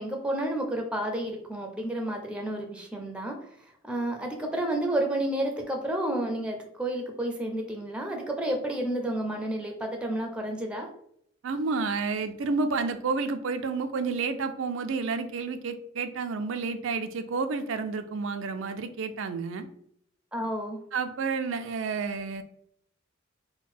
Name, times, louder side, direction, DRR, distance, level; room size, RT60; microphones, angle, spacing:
voice 1, 0.0-3.5 3.8-10.9 20.3-20.8, right 1 dB, 5° right, 3 dB, 0.5 m, -31 dB
voice 2, 11.4-19.7 20.9-22.4, right 4 dB, 70° right, 8 dB, 0.4 m, -30 dB
3.9 x 2.2 x 4.2 m, 0.69 s
head